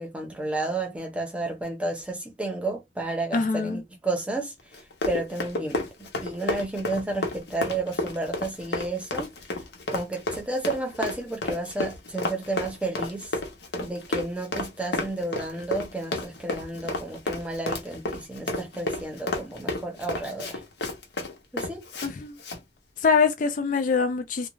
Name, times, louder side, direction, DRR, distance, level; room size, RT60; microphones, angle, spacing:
voice 1, 0.0-4.5 5.1-9.3 9.9-13.3 13.7-20.6 21.5-21.8, right 2 dB, 5° right, 0.8 m, -31 dB
voice 2, 3.3-3.8 22.0-22.4 23.0-24.5, left 5 dB, 45° left, 0.4 m, -24 dB
Run, 4.7-22.1 22.4-22.6, left 2 dB, 75° left, 0.8 m, -31 dB
2.4 x 2.2 x 3.0 m
head